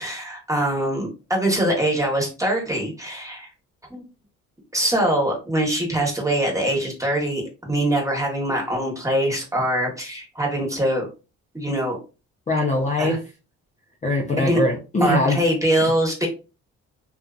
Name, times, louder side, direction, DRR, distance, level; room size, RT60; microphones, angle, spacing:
voice 1, 0.0-3.5 3.9-4.0 4.7-11.1 11.5-12.0 13.0-13.2 14.4-14.6 15.0-16.3, right 1 dB, 10° right, -1 dB, 1.2 m, -23 dB
voice 2, 12.5-13.2 14.0-15.4, left 1 dB, 25° left, -1 dB, 0.6 m, -21 dB
2.6 x 2.5 x 2.4 m, 0.31 s
cardioid pair, 90°, 30 cm